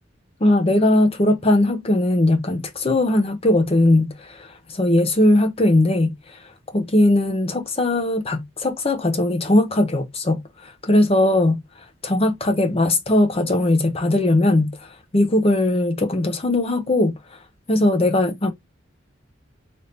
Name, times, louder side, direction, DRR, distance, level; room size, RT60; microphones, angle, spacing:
voice 1, 0.4-6.1 6.7-11.6 12.0-14.8 15.1-17.2 17.7-18.5, left 1 dB, 30° left, 0.7 m, -19 dB
3.5 x 2.7 x 4.0 m
head